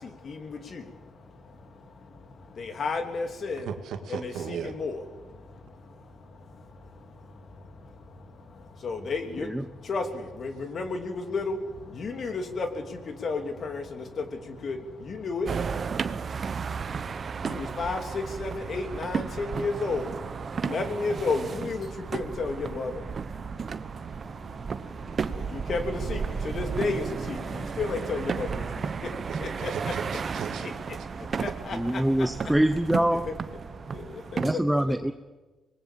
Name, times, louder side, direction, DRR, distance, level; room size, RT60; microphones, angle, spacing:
voice 1, 2.6-3.6 4.2-5.0 8.8-9.5 9.9-10.0 10.4-11.6 12.0-12.7 13.2-13.8 14.6-14.8 15.1-15.5 17.5-20.0 20.7-21.9 22.1-22.9 25.7-26.2 26.4-27.4 27.8-28.5 29.6-29.7 31.4-31.8, left 4 dB, 50° left, 6 dB, 3.0 m, -31 dB
voice 2, 3.6-4.7 15.4-15.7 29.3-30.7, right 8 dB, 75° right, 7 dB, 2.1 m, -37 dB
sound 1, 15.5-34.5, right 6 dB, 45° right, 1.0 m, -33 dB
voice 3, 31.7-33.3 34.4-35.1, right 1 dB, 5° right, 11 dB, 0.7 m, -24 dB
25.0 x 20.5 x 7.5 m, 1.2 s
cardioid pair, 90°, 0 cm